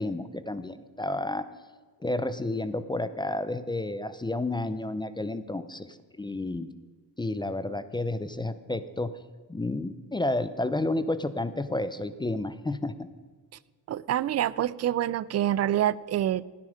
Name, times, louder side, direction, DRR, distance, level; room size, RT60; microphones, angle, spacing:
voice 1, 0.0-1.5 2.0-6.7 7.2-9.1 9.5-13.1, left 2 dB, 10° left, 13 dB, 0.5 m, -31 dB
voice 2, 13.9-16.4, right 11 dB, 40° right, 20 dB, 0.4 m, -26 dB
16.5 x 9.8 x 5.0 m, 1.5 s
cardioid pair, 115°, 39 cm